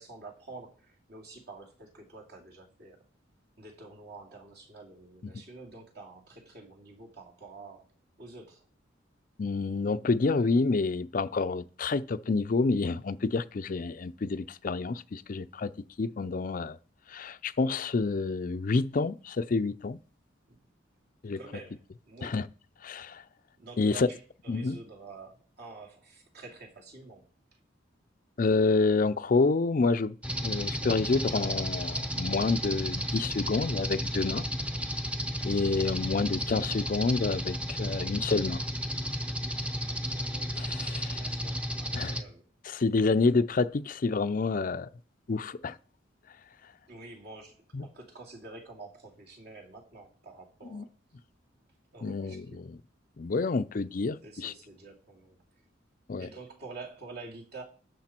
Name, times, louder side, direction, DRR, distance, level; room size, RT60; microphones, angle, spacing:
voice 1, 0.0-3.0 3.6-7.9 8.2-8.7 20.5-20.7 21.4-22.4 23.6-27.6 39.9-40.6 41.2-42.5 46.9-50.9 51.9-52.6 54.2-55.4 56.2-57.6, right 3 dB, 55° right, 2.7 m, -48 dB
voice 2, 9.4-15.7 16.0-16.8 17.1-20.0 21.2-21.4 22.2-22.4 22.8-23.2 23.8-24.1 24.5-24.8 28.4-30.1 30.4-34.4 35.4-38.6 40.6-41.2 41.9-42.1 42.7-44.9 45.3-45.8 50.7-50.8 52.0-52.6 53.2-54.5 56.1-56.3, left 3 dB, 45° left, 0.4 m, -28 dB
sound 1, 30.2-42.2, equal, 5° right, 0.7 m, -33 dB
12.0 x 7.0 x 4.4 m
head